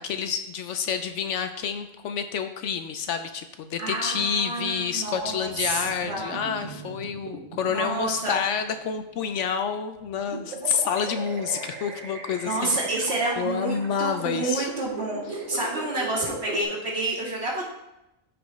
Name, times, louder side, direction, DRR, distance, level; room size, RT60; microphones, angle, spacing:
voice 1, 0.0-12.7 13.4-14.7, left 7 dB, 70° left, 8 dB, 0.9 m, -28 dB
voice 2, 3.8-6.4 7.7-8.4 12.5-17.7, right 2 dB, 50° right, -4 dB, 2.3 m, -29 dB
sound 1, 4.6-9.4 9.9-16.6, right 3 dB, 75° right, 1.4 m, -38 dB
14.0 x 4.7 x 3.1 m, 0.91 s
omnidirectional pair, 1.4 m